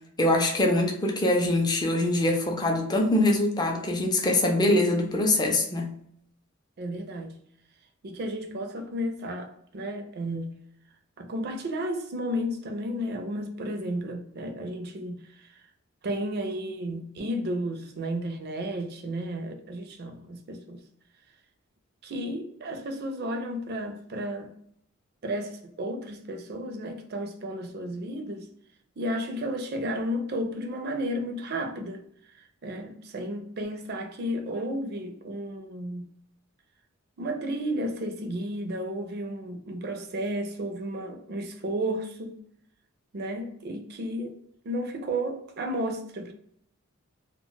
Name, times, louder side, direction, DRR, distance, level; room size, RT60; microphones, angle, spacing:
voice 1, 0.2-5.9, left 1 dB, 20° left, 0.4 m, -23 dB
voice 2, 6.8-7.4 8.0-10.6 11.2-15.5 16.0-20.8 22.0-24.6 25.2-28.5 29.0-32.0 32.3-36.0 37.2-42.4 43.1-44.3 44.6-46.3, equal, 50° right, 0.4 m, -33 dB
2.2 x 2.1 x 3.8 m
head